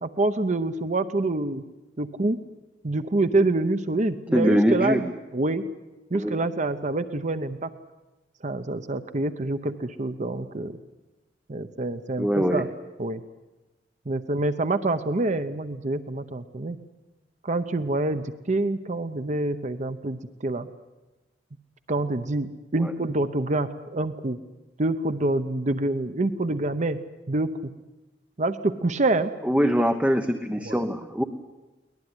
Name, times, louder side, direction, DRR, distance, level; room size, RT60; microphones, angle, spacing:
voice 1, 0.0-1.6 2.0-2.4 2.8-5.1 5.3-5.6 6.1-7.7 8.4-10.8 11.5-12.7 13.0-13.2 14.1-16.8 17.4-20.7 21.9-24.4 24.8-27.0 27.3-27.5 28.4-29.3 30.7-30.8, right 2 dB, 40° right, 10 dB, 0.8 m, -26 dB
voice 2, 4.3-5.0 6.1-6.4 12.2-12.6 22.8-22.9 29.4-31.2, equal, 5° right, 6 dB, 1.0 m, -23 dB
22.5 x 19.0 x 9.8 m, 1.1 s
head